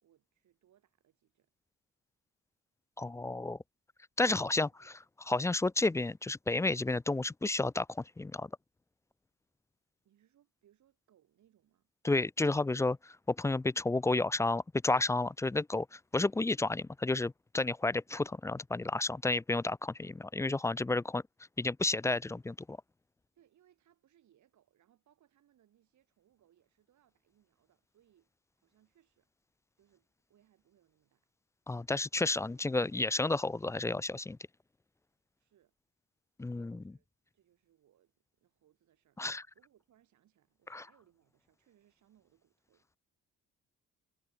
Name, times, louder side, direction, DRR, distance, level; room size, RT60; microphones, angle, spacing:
voice 1, 0.0-1.5 4.4-5.0 10.0-11.9 15.9-16.0 23.3-29.3 29.8-31.3 32.4-33.2 35.4-35.7 36.5-37.1 37.3-39.2 39.5-42.9, right 11 dB, 70° right, 6.0 m, -70 dB
voice 2, 3.0-3.6 4.2-4.7 5.3-8.5 12.0-13.0 13.3-21.2 21.6-22.8 31.7-34.4 36.4-36.8 39.2-39.4 40.7-40.8, left 2 dB, 10° left, 0.4 m, -31 dB
cardioid pair, 90°, 30 cm